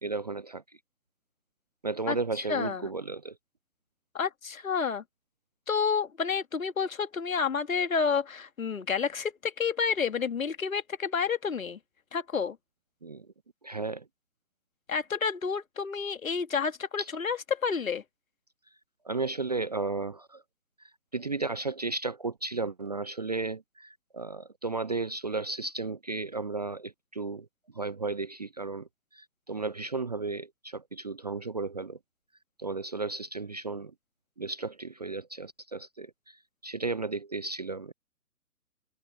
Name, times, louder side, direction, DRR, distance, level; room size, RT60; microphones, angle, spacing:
voice 1, 0.0-0.6 1.8-3.3 13.0-13.3 13.6-14.1 17.0-17.1 19.0-20.4 21.1-27.5 27.7-32.0 32.6-33.9 34.4-36.4 36.6-37.9, right 3 dB, 30° right, 0.5 m, -34 dB
voice 2, 2.5-2.8 4.1-5.0 5.7-11.8 12.1-12.6 14.9-18.0, left 6 dB, 65° left, 2.1 m, -29 dB
figure-of-eight pair, 130°, 45 cm